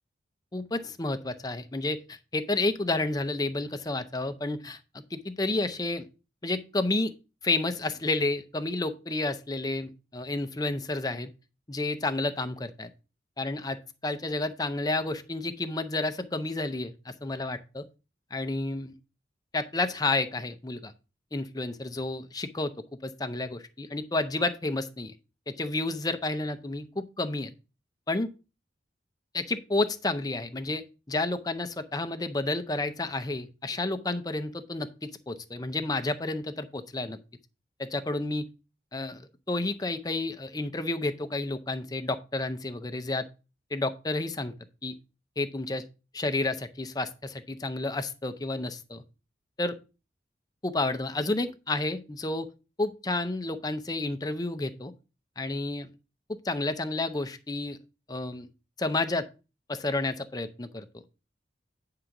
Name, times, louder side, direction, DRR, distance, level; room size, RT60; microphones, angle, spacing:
voice 1, 0.5-4.8 5.1-6.1 6.4-7.1 7.4-11.3 11.7-12.9 13.4-17.9 18.3-18.9 19.5-20.9 21.3-22.7 23.0-25.1 25.5-27.5 28.1-28.3 29.3-37.2 37.8-38.4 38.9-43.3 43.7-44.5 44.8-44.9 45.4-45.8 46.1-49.0 49.6-49.8 50.6-52.5 52.8-54.9 55.4-55.9 56.3-57.8 58.1-58.5 58.8-59.3 59.7-60.9, left 2 dB, 20° left, 0.6 m, -30 dB
9.5 x 3.8 x 5.8 m
head